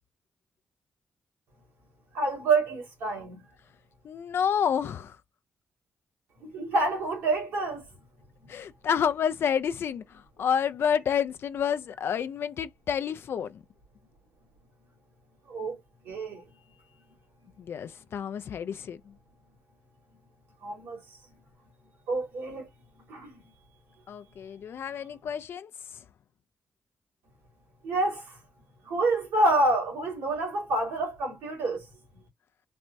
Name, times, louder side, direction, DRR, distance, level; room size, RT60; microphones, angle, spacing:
voice 1, 2.1-3.4 6.4-7.9 15.5-15.8 16.1-16.4 20.6-21.2 22.1-22.7 23.1-23.3 27.8-28.4 28.8-31.9, right 2 dB, 90° right, 2.1 m, -27 dB
voice 2, 4.0-5.2 8.5-10.0 10.4-13.6 17.6-19.0 24.1-25.7, left 8 dB, 65° left, 0.4 m, -29 dB
4.2 x 2.2 x 2.6 m
supercardioid pair, 45°, 4 cm